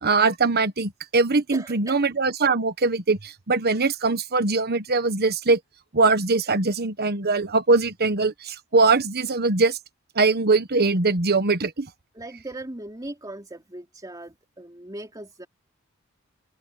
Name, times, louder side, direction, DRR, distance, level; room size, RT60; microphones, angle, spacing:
voice 1, 0.0-5.6 5.9-9.8 10.1-11.9, right 3 dB, 45° right, 1.3 m, -22 dB
voice 2, 1.5-2.0 12.1-15.5, right 1 dB, 20° right, 3.0 m, -38 dB
open air
head